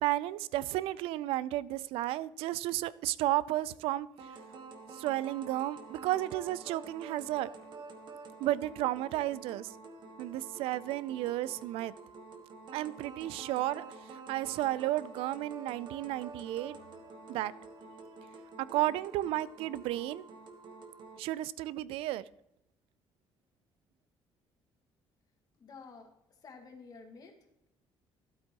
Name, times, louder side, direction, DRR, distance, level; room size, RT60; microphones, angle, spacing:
voice 1, 0.0-4.1 4.9-7.5 8.4-9.7 10.2-11.9 12.7-13.9 14.1-16.8 17.3-17.5 18.7-20.3 21.2-22.2, right 15 dB, 90° right, 19 dB, 0.4 m, -33 dB
sound 1, 4.2-21.2, right 3 dB, 55° right, 1.2 m, -49 dB
voice 2, 25.6-26.1 26.4-27.3, left 4 dB, 45° left, 3 dB, 1.8 m, -50 dB
12.5 x 8.1 x 2.9 m, 0.84 s
cardioid pair, 125°, 9 cm